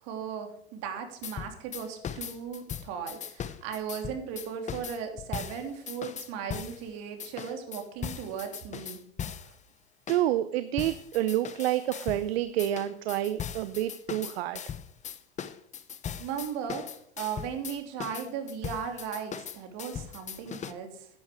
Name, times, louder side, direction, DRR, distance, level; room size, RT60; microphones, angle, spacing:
voice 1, 0.0-9.0 16.2-16.9 17.2-21.1, right 7 dB, 55° right, 5 dB, 3.0 m, -37 dB
sound 1, 1.2-6.8 7.2-9.6 10.1-10.3 10.8-12.3 12.6-20.7, left 8 dB, 20° left, 0.8 m, -39 dB
voice 2, 10.1-14.6, right 13 dB, 70° right, 13 dB, 0.8 m, -28 dB
11.0 x 10.0 x 5.0 m, 0.67 s
hypercardioid pair, 100°, 32 cm